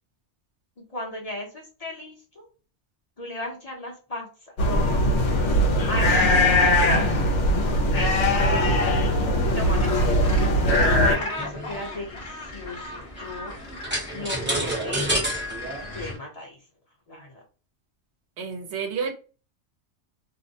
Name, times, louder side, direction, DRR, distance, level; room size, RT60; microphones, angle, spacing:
voice 1, 0.8-2.5 3.2-4.3 4.6-5.6 5.9-7.2 7.9-9.0 9.5-10.3 11.0-13.6 14.1-15.1 15.9-16.6 17.1-17.4, left 2 dB, 40° left, 0.7 m, -36 dB
sound 1, 4.6-11.2, left 1 dB, 80° left, 0.9 m, -20 dB
Gull seagull, 9.4-16.2, left 2 dB, 60° left, 1.1 m, -38 dB
sound 2, 10.7-16.1, right 1 dB, 10° right, 0.6 m, -30 dB
voice 2, 18.4-19.1, right 6 dB, 70° right, 0.9 m, -30 dB
2.5 x 2.1 x 2.6 m
omnidirectional pair, 1.2 m